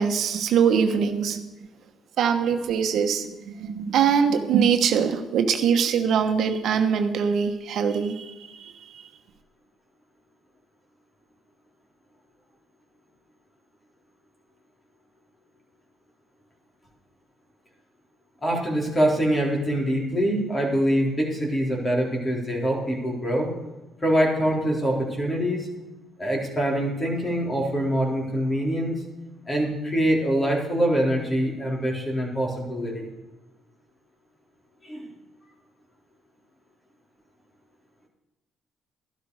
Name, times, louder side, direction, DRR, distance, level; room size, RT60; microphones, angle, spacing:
voice 1, 0.0-1.4 2.2-8.9, right 7 dB, 70° right, 6 dB, 1.1 m, -23 dB
voice 2, 18.4-23.5 24.0-25.7 26.2-29.0 29.5-33.1 34.8-35.1, equal, 25° left, -1 dB, 4.1 m, -24 dB
12.5 x 12.0 x 4.9 m, 1.1 s
cardioid pair, 90°, 0 cm